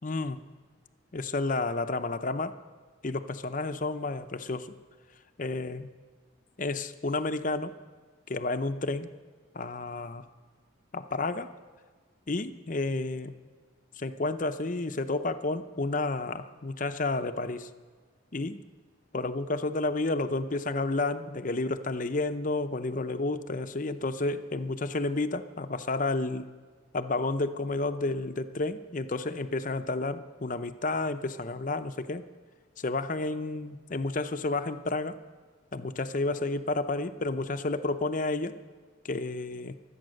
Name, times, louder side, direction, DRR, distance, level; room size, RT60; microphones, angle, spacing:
voice 1, 0.0-0.4 1.1-2.5 3.0-4.7 5.4-5.9 6.6-7.7 8.3-9.1 9.5-10.3 10.9-11.5 12.3-13.4 14.0-17.7 18.3-18.6 19.1-26.5 26.9-32.2 32.8-35.2 35.7-38.6 39.0-39.8, left 2 dB, 40° left, 10 dB, 0.7 m, -31 dB
23.0 x 8.7 x 6.5 m, 1.5 s
head